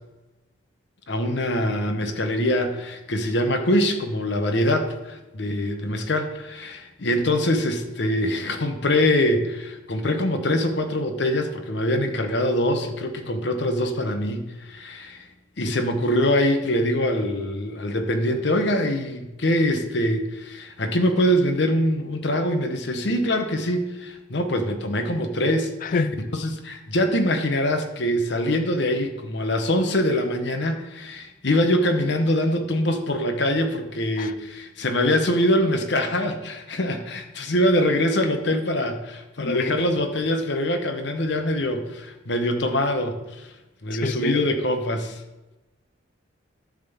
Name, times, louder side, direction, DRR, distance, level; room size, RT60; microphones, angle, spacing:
voice 1, 1.1-15.3 15.6-43.5 43.8-45.2, left 1 dB, 60° left, 0.9 m, -24 dB
voice 2, 25.8-26.2 34.2-34.3 39.4-39.7 44.0-44.4, left 4 dB, 45° left, 0.3 m, -26 dB
10.5 x 3.7 x 6.9 m
head